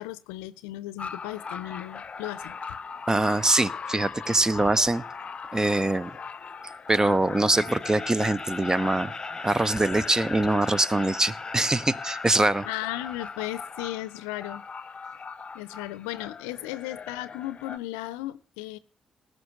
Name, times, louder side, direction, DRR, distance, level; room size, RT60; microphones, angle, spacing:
voice 1, 0.0-2.6 12.6-14.6 15.5-18.8, left 16 dB, 80° left, 17 dB, 0.6 m, -35 dB
sound 1, 1.0-17.8, left 5 dB, 45° left, 0.7 m, -40 dB
voice 2, 3.1-5.0 5.5-6.1 6.9-9.1 9.4-12.7, right 2 dB, 20° right, 19 dB, 0.8 m, -23 dB
Laughter, 7.5-14.5, left 3 dB, 20° left, 1.2 m, -40 dB
18.5 x 6.6 x 6.6 m, 0.37 s
hypercardioid pair, 40°, 3 cm